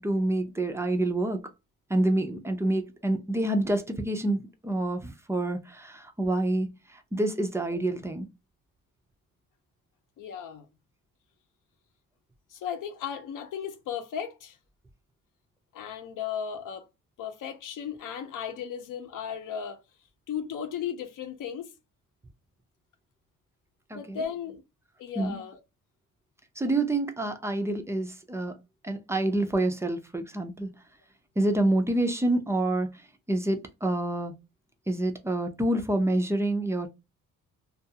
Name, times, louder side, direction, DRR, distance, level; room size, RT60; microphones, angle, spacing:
voice 1, 0.0-1.4 1.9-8.3 23.9-24.2 25.2-25.4 26.6-28.6 28.8-30.7 31.4-34.3 34.9-36.9, right 1 dB, 10° right, 0.4 m, -27 dB
voice 2, 10.2-10.7 12.5-14.6 15.7-16.9 17.2-19.8 20.3-21.7 23.9-24.6 25.0-25.6, left 8 dB, 75° left, 0.7 m, -35 dB
2.4 x 2.3 x 2.7 m
cardioid pair, 140°, 32 cm